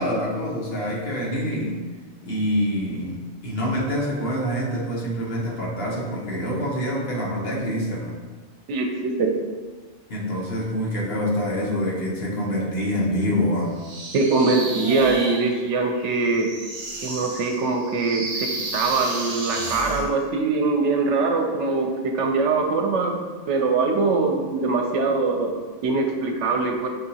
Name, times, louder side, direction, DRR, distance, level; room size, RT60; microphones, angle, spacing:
voice 1, 0.0-1.8 2.2-3.2 3.4-8.1 10.1-13.7, equal, 55° left, -4 dB, 1.1 m, -26 dB
voice 2, 8.7-9.3 14.1-16.5 17.0-25.5 25.8-26.9, right 3 dB, 80° right, 3 dB, 0.9 m, -22 dB
sound 1, 13.8-20.1, right 2 dB, 45° right, 0.5 m, -33 dB
6.0 x 2.7 x 2.7 m, 1.3 s
omnidirectional pair, 1.2 m